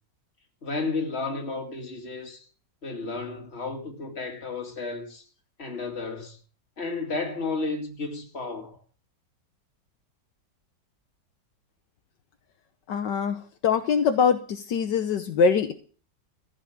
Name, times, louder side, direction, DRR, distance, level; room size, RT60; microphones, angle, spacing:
voice 1, 0.6-2.5 2.8-5.2 5.6-6.4 6.8-8.8, left 3 dB, 35° left, 2.6 m, -32 dB
voice 2, 12.9-15.7, left 6 dB, 75° left, 1.6 m, -23 dB
14.5 x 6.2 x 8.6 m
omnidirectional pair, 1.9 m